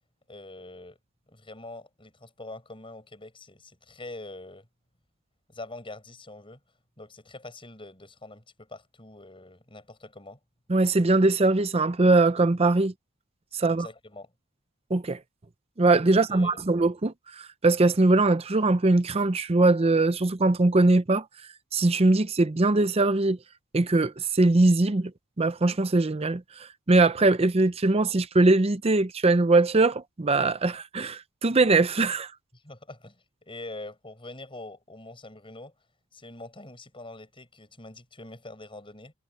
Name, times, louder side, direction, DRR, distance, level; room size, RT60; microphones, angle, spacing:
voice 1, 0.3-1.0 1.3-4.7 5.5-6.6 7.0-10.4 13.6-14.3 16.1-16.6 32.5-35.7 36.1-39.1, left 2 dB, 25° left, 7.1 m, -44 dB
voice 2, 10.7-12.9 13.5-13.9 14.9-15.2 15.8-21.2 21.7-23.4 23.7-25.1 25.4-32.3, right 2 dB, 25° right, 0.6 m, -21 dB
head